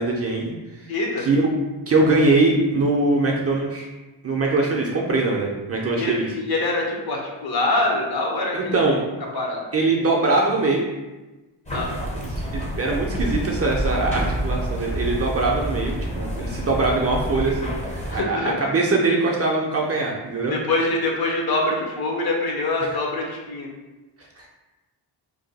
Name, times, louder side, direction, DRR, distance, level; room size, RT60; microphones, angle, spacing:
voice 1, 0.0-0.9 1.2-1.5 1.9-3.9 4.2-6.3 8.5-9.0 9.7-10.8 12.2-17.7 18.1-20.5 24.2-24.5, right 3 dB, 35° right, -2 dB, 0.4 m, -22 dB
voice 2, 0.9-1.3 6.0-8.8 9.3-9.6 11.7-11.9 18.1-18.7 20.5-23.7, left 2 dB, 55° left, 0 dB, 0.7 m, -24 dB
sound 1, 11.7-18.2, equal, 15° left, 0.5 m, -28 dB
2.6 x 2.2 x 3.9 m, 1.1 s
wide cardioid pair, 145°, 44 cm